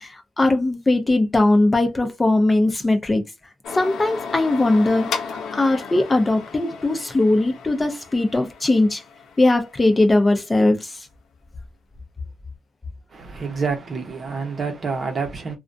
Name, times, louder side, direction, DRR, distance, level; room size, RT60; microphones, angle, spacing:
voice 1, 0.0-3.2 3.7-9.0 9.4-11.1, left 2 dB, 20° left, 0.6 m, -20 dB
sound 1, 3.6-10.3, left 6 dB, 70° left, 0.5 m, -35 dB
voice 2, 13.1-15.6, right 5 dB, 40° right, 0.8 m, -28 dB
2.4 x 2.1 x 2.5 m
supercardioid pair, 80°, 0 cm